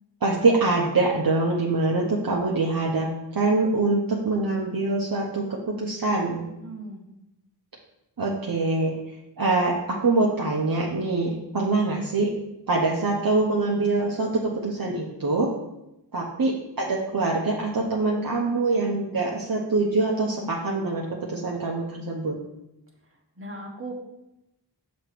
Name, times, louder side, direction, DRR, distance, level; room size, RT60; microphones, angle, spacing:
voice 1, 0.2-6.4 8.2-9.0 9.4-12.3 12.7-15.5 16.1-22.3, right 3 dB, 50° right, -3 dB, 1.0 m, -24 dB
voice 2, 6.5-7.1 23.4-23.9, right 2 dB, 30° right, -1 dB, 1.6 m, -38 dB
6.5 x 3.1 x 5.9 m, 0.89 s
wide cardioid pair, 50°, 43 cm